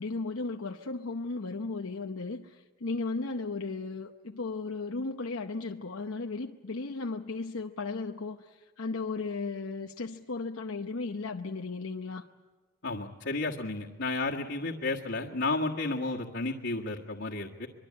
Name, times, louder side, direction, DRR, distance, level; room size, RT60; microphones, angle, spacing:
voice 1, 0.0-12.3, left 3 dB, 75° left, 0.8 m, -35 dB
voice 2, 12.8-17.7, left 3 dB, 55° left, 1.7 m, -32 dB
24.0 x 23.5 x 8.7 m
head